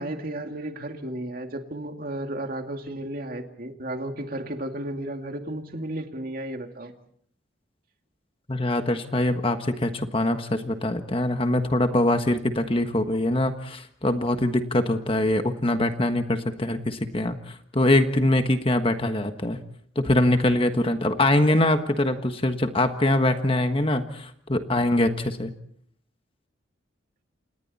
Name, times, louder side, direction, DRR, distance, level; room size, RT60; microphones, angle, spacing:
voice 1, 0.0-6.9, right 1 dB, 50° right, 5 dB, 2.4 m, -33 dB
voice 2, 8.5-19.6 19.9-25.5, left 1 dB, 30° left, 7 dB, 1.4 m, -23 dB
29.5 x 27.5 x 4.2 m, 0.63 s
head